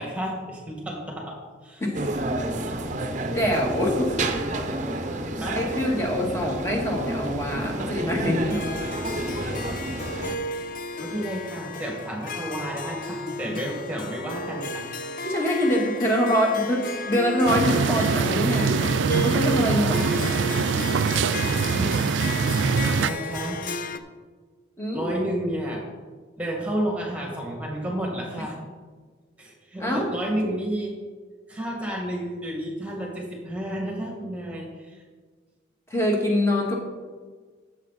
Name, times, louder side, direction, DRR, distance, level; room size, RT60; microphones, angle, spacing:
voice 1, 0.0-1.4 1.6-1.8 5.3-5.6 11.0-14.8 21.4-22.0 23.0-23.6 24.9-25.8 26.4-28.6 29.4-30.9 31.5-35.0, right 1 dB, 5° right, -1 dB, 1.8 m, -31 dB
sound 1, 1.9-10.4, right 2 dB, 40° right, 0.8 m, -30 dB
voice 2, 3.3-4.1 5.5-8.6 15.2-18.9 19.1-20.0 24.8-25.1 29.8-30.1 35.9-36.8, equal, 15° left, -1 dB, 1.7 m, -24 dB
Harp, 8.5-24.0, left 2 dB, 45° left, 0.5 m, -33 dB
sound 2, 17.5-23.1, right 5 dB, 70° right, 0.4 m, -23 dB
12.5 x 7.2 x 4.0 m, 1.5 s
head